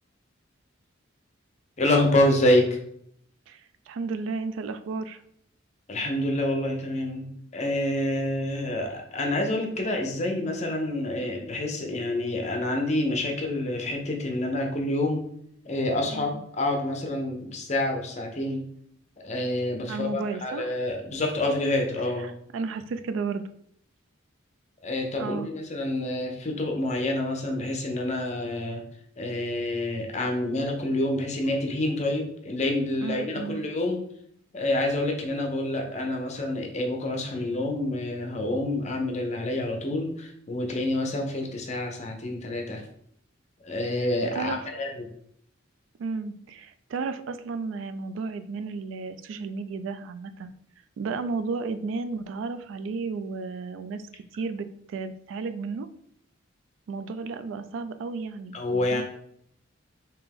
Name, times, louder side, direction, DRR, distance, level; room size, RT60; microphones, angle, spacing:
voice 1, 1.8-2.6 5.9-15.3 15.7-18.6 19.2-22.3 24.8-28.8 29.2-34.0 34.5-42.8 43.6-45.1 58.5-59.0, left 1 dB, 35° left, 2 dB, 0.6 m, -27 dB
voice 2, 3.5-5.2 16.1-16.4 19.9-20.7 22.2-23.4 25.2-25.5 33.0-33.6 44.0-44.1 44.3-44.6 46.0-50.5 51.0-55.9 56.9-59.0, right 4 dB, 75° right, 11 dB, 0.3 m, -33 dB
3.4 x 2.8 x 3.5 m, 0.69 s
head